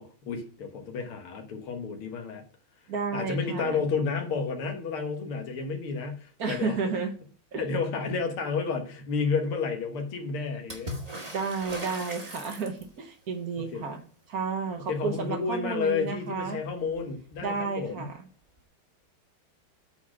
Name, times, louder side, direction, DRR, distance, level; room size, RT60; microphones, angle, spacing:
voice 1, 0.0-2.4 3.1-6.8 7.6-11.0 13.7-13.8 14.9-18.1, left 5 dB, 85° left, 4 dB, 2.2 m, -31 dB
voice 2, 2.9-3.8 6.4-7.1 7.5-7.6 11.3-14.0 14.3-16.6 17.4-18.1, right 4 dB, 55° right, 5 dB, 1.3 m, -32 dB
Water / Splash splatter, 10.7-13.1 16.4-16.5 16.7-17.5 18.6-18.7, equal, 20° right, 1.5 m, -39 dB
8.4 x 4.1 x 6.0 m, 0.42 s
omnidirectional pair, 2.3 m